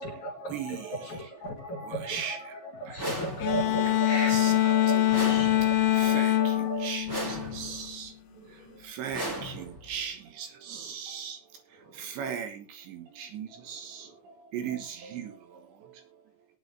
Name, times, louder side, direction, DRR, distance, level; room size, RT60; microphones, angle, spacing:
voice 1, 0.0-7.0, right 2 dB, 50° left, 3 dB, 2.7 m, -36 dB
sound 1, 3.0-3.8 5.1-6.0 7.1-7.9 9.1-10.0, right 1 dB, 20° right, 2.4 m, -36 dB
sound 2, 3.4-7.9, left 14 dB, 65° left, 2.5 m, -24 dB
voice 2, 7.5-7.9 8.3-8.8 10.7-11.0 11.7-12.1 13.1-13.2 13.6-14.2, right 4 dB, 45° right, 1 dB, 2.6 m, -55 dB
voice 3, 9.0-9.5 9.9-10.1 10.9-11.3 12.2-12.5 13.4-13.8 14.5-14.8 15.1-15.2, right 8 dB, 70° right, 7 dB, 3.4 m, -34 dB
18.5 x 9.9 x 2.6 m, 0.29 s
omnidirectional pair, 5.7 m